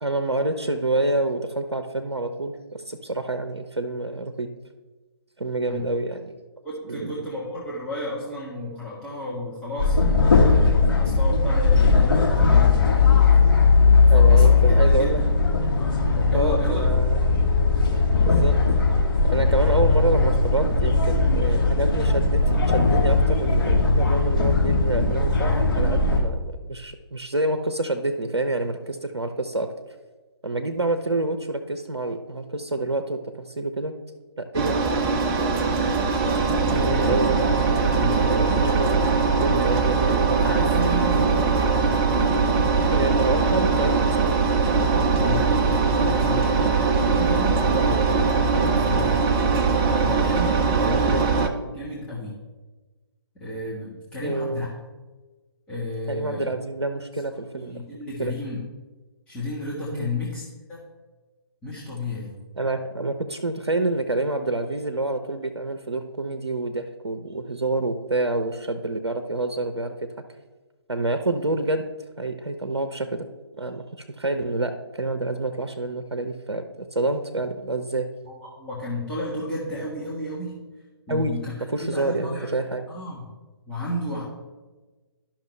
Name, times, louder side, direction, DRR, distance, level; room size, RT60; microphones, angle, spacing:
voice 1, 0.0-4.5 5.4-6.2 6.9-7.3 14.1-15.2 16.3-17.2 18.2-18.6 19.3-29.7 30.4-33.9 34.4-34.8 36.2-36.4 36.7-37.3 38.3-40.0 42.9-44.3 47.9-48.1 50.8-51.2 54.2-54.8 56.1-57.8 58.2-58.3 59.9-60.1 62.6-69.9 70.9-71.9 72.2-73.3 73.6-73.8 74.2-76.6 76.9-78.1 81.1-81.3 81.7-82.8, right 2 dB, 75° right, 7 dB, 0.6 m, -27 dB
voice 2, 6.6-15.4 15.7-16.8 36.6-37.1 37.9-38.7 39.4-39.8 40.3-41.6 45.2-45.7 46.0-46.6 47.0-49.3 49.9-51.2 51.6-52.4 53.4-54.7 55.7-56.5 57.5-58.6 59.3-60.4 60.7-60.8 61.6-62.4 78.2-80.6 81.1-81.5 81.8-82.5 82.9-83.2 83.7-84.2, left 1 dB, 5° left, -9 dB, 1.1 m, -33 dB
sound 1, 9.8-26.2, left 4 dB, 50° left, 1.5 m, -18 dB
Engine, 34.5-51.5, right 4 dB, 10° right, 0.3 m, -21 dB
11.5 x 5.8 x 3.2 m, 1.3 s
figure-of-eight pair, 135°, 14 cm